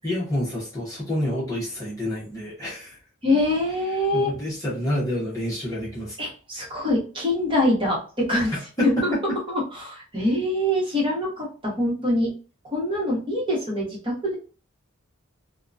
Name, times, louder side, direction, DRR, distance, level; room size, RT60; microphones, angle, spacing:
voice 1, 0.0-3.0 4.1-6.2 8.8-9.0, left 1 dB, 15° left, -7 dB, 0.8 m, -28 dB
voice 2, 3.2-4.3 6.2-9.1 9.5-12.3 12.7-14.3, left 1 dB, 25° right, -5 dB, 1.1 m, -24 dB
2.8 x 2.2 x 2.4 m, 0.37 s
head